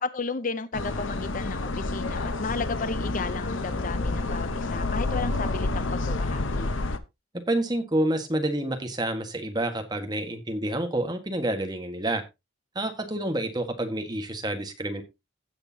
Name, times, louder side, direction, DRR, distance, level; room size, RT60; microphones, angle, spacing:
voice 1, 0.0-6.7, left 4 dB, 40° left, 0.6 m, -33 dB
sound 1, 0.7-7.0, left 2 dB, 75° left, 1.0 m, -29 dB
voice 2, 7.5-12.2 12.8-15.0, right 1 dB, 20° right, 1.6 m, -28 dB
16.0 x 6.7 x 2.8 m
head